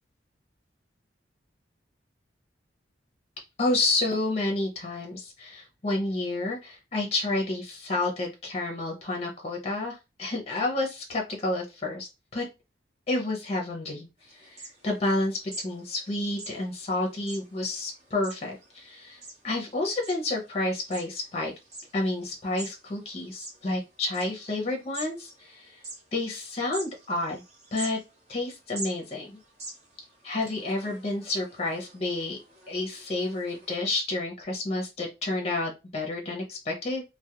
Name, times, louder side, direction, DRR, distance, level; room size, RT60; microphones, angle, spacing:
voice 1, 3.6-12.5 13.1-14.1 14.3-15.4 15.6-19.2 19.4-21.5 21.9-25.8 26.1-27.4 27.7-28.0 28.3-29.4 30.2-32.4 32.7-37.0, left 2 dB, 35° left, 0 dB, 0.6 m, -30 dB
sound 1, 14.2-33.8, right 2 dB, 35° right, 0.8 m, -46 dB
2.3 x 2.1 x 2.8 m, 0.25 s
head